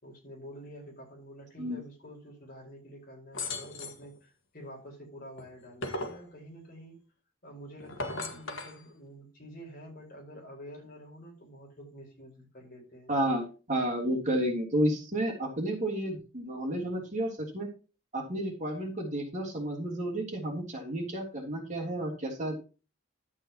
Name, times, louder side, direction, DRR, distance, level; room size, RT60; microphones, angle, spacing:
voice 1, 0.0-7.0 7.4-13.1, equal, 45° left, -1 dB, 4.6 m, -48 dB
sound 1, 3.3-4.1 5.4-6.2 7.8-8.8, left 2 dB, 75° left, 1.6 m, -37 dB
voice 2, 13.1-17.7 18.1-22.6, right 1 dB, 35° right, -1 dB, 3.1 m, -31 dB
12.0 x 8.2 x 2.9 m, 0.32 s
head